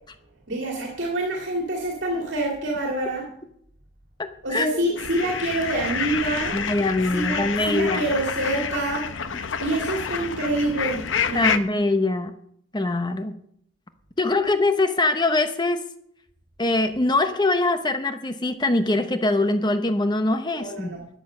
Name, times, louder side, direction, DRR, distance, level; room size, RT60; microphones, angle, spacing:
voice 1, 0.5-3.3 4.4-6.6 7.1-9.1 9.6-11.6 20.5-21.0, right 2 dB, 70° right, -1 dB, 2.4 m, -26 dB
voice 2, 4.2-4.7 6.5-8.0 9.3-9.4 11.3-12.3 12.7-13.3 14.2-15.8 16.6-20.9, left 2 dB, 20° left, 9 dB, 0.8 m, -23 dB
sound 1, 5.0-11.6, left 6 dB, 80° left, 0.9 m, -28 dB
12.5 x 9.2 x 6.4 m, 0.67 s
head